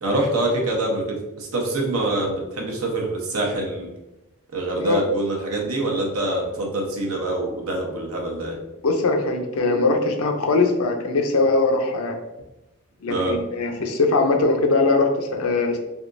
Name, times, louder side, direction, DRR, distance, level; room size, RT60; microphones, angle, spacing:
voice 1, 0.0-3.9 4.5-8.6 13.1-13.4, right 2 dB, 80° right, -1 dB, 0.8 m, -25 dB
voice 2, 8.8-12.2 13.0-15.8, left 3 dB, 75° left, 4 dB, 0.5 m, -21 dB
3.5 x 2.7 x 2.5 m, 0.97 s
head